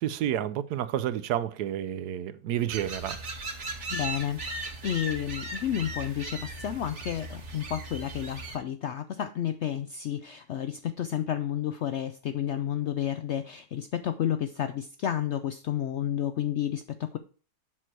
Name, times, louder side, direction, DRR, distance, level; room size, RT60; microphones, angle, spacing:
voice 1, 0.0-3.2, right 11 dB, 80° right, 1.2 m, -30 dB
sound 1, 2.7-8.6, right 2 dB, 50° right, 1.7 m, -37 dB
voice 2, 3.9-17.2, left 10 dB, 75° left, 0.6 m, -31 dB
7.7 x 6.1 x 4.5 m
omnidirectional pair, 1.7 m